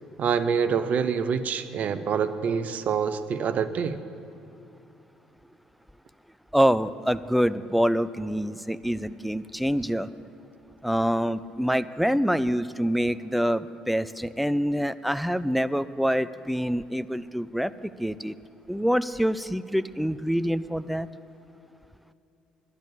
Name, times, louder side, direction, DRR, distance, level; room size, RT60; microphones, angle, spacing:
voice 1, 0.2-4.0, right 6 dB, 50° right, 11 dB, 0.8 m, -26 dB
voice 2, 6.5-10.1 10.8-18.4 18.7-21.1, equal, ahead, 14 dB, 0.5 m, -26 dB
11.0 x 10.5 x 8.6 m, 2.9 s
figure-of-eight pair, 50°, 3 cm